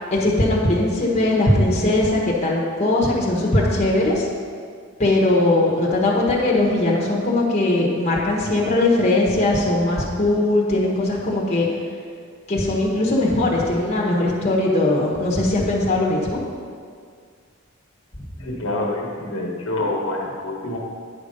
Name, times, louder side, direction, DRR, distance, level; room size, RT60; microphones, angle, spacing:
voice 1, 0.1-4.2 5.0-11.7 12.5-16.4, left 2 dB, 35° left, -3 dB, 1.3 m, -20 dB
voice 2, 18.3-20.8, left 2 dB, 75° left, -1 dB, 1.3 m, -26 dB
9.5 x 5.2 x 5.4 m, 2.1 s
head